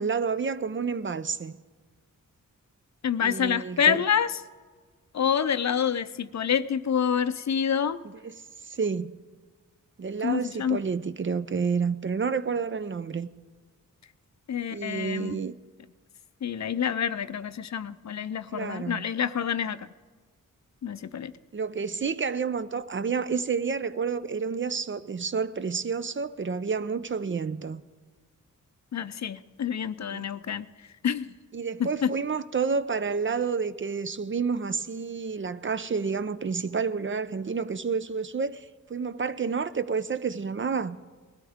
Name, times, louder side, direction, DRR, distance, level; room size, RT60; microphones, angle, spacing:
voice 1, 0.0-1.5 3.2-4.0 8.2-8.3 8.6-9.1 10.0-13.3 14.7-15.5 18.5-19.1 21.5-27.8 30.1-30.3 31.5-41.0, right 5 dB, 35° right, 0.5 m, -29 dB
voice 2, 3.0-4.4 5.1-8.0 10.2-10.8 14.5-15.4 16.4-19.9 20.8-21.3 28.9-30.7 31.0-31.3 31.8-32.1, left 8 dB, 55° left, 0.5 m, -27 dB
20.0 x 12.5 x 3.6 m
cardioid pair, 70°, 33 cm